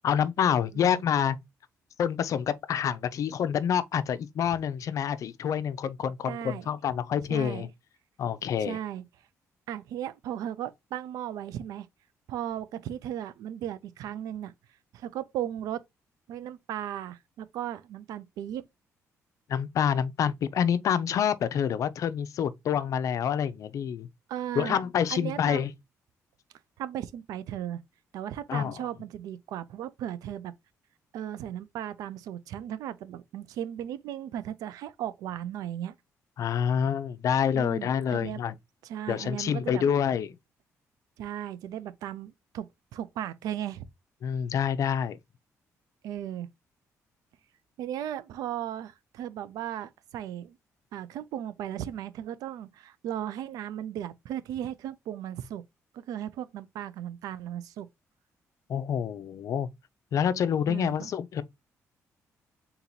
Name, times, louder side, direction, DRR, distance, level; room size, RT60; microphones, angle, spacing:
voice 1, 0.0-1.4 2.0-7.7 8.2-8.8 19.5-24.1 24.6-25.7 28.5-28.8 36.4-38.5 39.1-40.4 44.2-45.2 58.7-59.7 60.1-61.4, left 8 dB, 65° left, 0.5 m, -27 dB
voice 2, 6.2-6.7 7.3-7.7 8.6-9.0 9.7-11.9 12.3-14.5 14.9-15.8 16.3-18.6 24.3-24.8 25.1-25.7 26.8-27.8 28.1-30.5 31.1-35.9 37.5-38.4 38.8-39.8 41.2-43.8 46.0-46.5 47.8-50.6 50.9-55.6 55.9-57.9 60.7-61.1, right 11 dB, 85° right, 0.4 m, -36 dB
3.9 x 2.9 x 3.8 m
cardioid pair, 80°, 6 cm